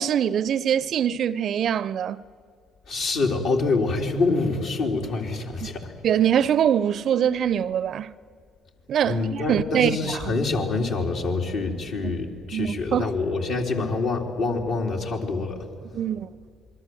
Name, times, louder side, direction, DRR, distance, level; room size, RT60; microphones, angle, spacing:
voice 1, 0.0-2.2 5.6-5.7 6.0-8.1 8.9-10.4 12.5-13.1 15.9-16.3, right 9 dB, 55° right, 0.6 m, -23 dB
voice 2, 2.9-5.9 9.0-15.7, left 3 dB, 65° left, 3.4 m, -26 dB
27.0 x 22.0 x 7.8 m
hypercardioid pair, 50°, 0 cm